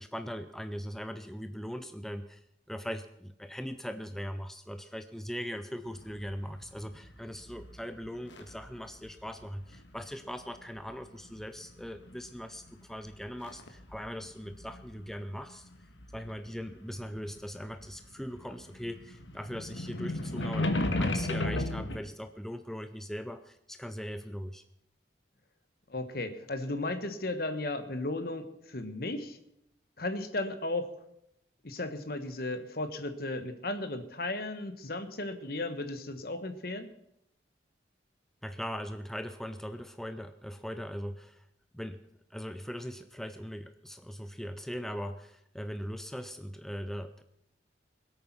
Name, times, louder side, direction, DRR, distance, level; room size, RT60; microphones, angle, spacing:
voice 1, 0.0-2.4 2.7-15.7 16.1-24.6 38.4-41.5 41.7-42.0 42.3-47.2, equal, ahead, 9 dB, 0.5 m, -40 dB
sound 1, 5.9-8.8 9.1-10.3 11.0-12.5 12.8-17.9 18.2-22.0, left 1 dB, 90° left, 1.5 m, -35 dB
voice 2, 25.9-29.4 30.0-30.9 31.6-36.9, left 2 dB, 55° left, 10 dB, 1.3 m, -35 dB
21.5 x 8.6 x 5.9 m, 0.79 s
head